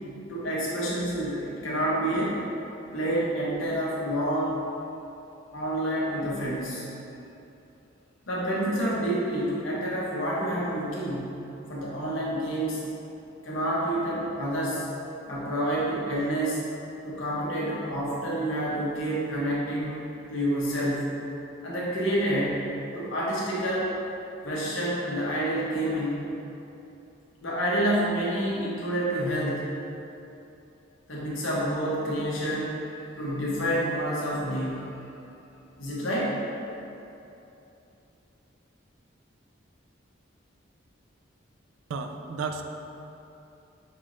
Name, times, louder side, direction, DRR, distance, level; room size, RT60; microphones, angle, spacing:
voice 1, 0.3-2.4 2.9-4.6 5.5-6.8 8.3-11.3 11.7-12.8 13.4-14.8 15.3-16.6 17.0-20.0 20.3-21.1 21.6-22.6 22.9-23.9 24.4-26.2 27.4-29.6 31.1-32.8 33.2-35.0 35.8-36.3, right 1 dB, 85° left, -6 dB, 1.0 m, -28 dB
voice 2, 41.9-42.6, right 4 dB, 85° right, 5 dB, 0.3 m, -32 dB
5.8 x 2.6 x 3.1 m, 2.9 s
head